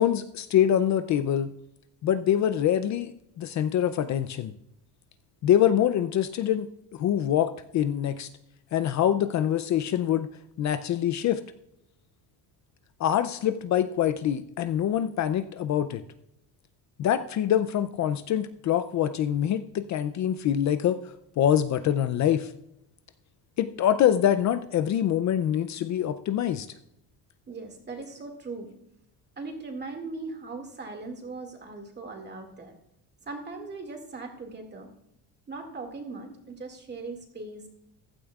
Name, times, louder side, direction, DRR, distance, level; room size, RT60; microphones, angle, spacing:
voice 1, 0.0-1.5 2.0-4.5 5.4-8.3 8.7-10.3 10.6-11.4 13.0-16.0 17.0-21.0 21.4-22.5 23.6-26.7, left 10 dB, 45° left, 11 dB, 0.5 m, -25 dB
voice 2, 27.5-28.7 29.4-32.8 33.3-34.9 35.5-37.7, right 3 dB, 25° right, 4 dB, 2.1 m, -39 dB
15.0 x 12.0 x 2.4 m, 0.80 s
cardioid pair, 145°, 39 cm